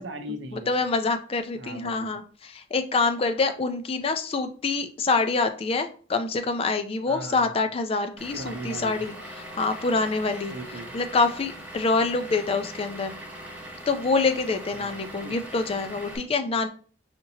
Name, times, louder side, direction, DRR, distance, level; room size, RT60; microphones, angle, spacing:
voice 1, 0.0-0.9 1.5-2.2 7.1-7.6 8.3-9.0 10.5-10.9 14.7-15.5, right 1 dB, 70° right, 7 dB, 0.6 m, -39 dB
voice 2, 0.7-9.2 9.6-10.5 10.9-13.1 13.9-16.7, left 4 dB, 30° left, 8 dB, 0.4 m, -26 dB
Vehicle / Engine, 8.2-16.2, right 1 dB, 10° right, 1.1 m, -41 dB
5.0 x 2.8 x 2.7 m, 0.41 s
head